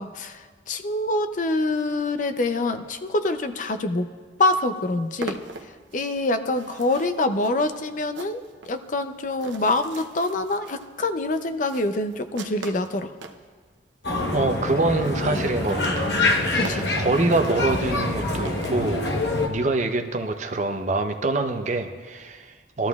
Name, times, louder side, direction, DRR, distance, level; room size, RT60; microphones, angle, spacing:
voice 1, 0.0-4.1 4.4-5.4 5.9-13.1 16.5-16.9, left 2 dB, 45° left, 9 dB, 0.5 m, -25 dB
sound 1, 4.2-4.3 4.6-13.4 14.0-14.1 14.3-14.4 14.6-14.7 15.0-19.3, right 3 dB, 85° right, 0.8 m, -42 dB
sound 2, 14.0-19.5, left 2 dB, 65° left, 1.0 m, -25 dB
voice 2, 14.3-16.1 16.4-19.1 19.5-22.9, right 2 dB, 40° right, 6 dB, 0.7 m, -25 dB
19.0 x 13.0 x 2.3 m, 1.5 s
head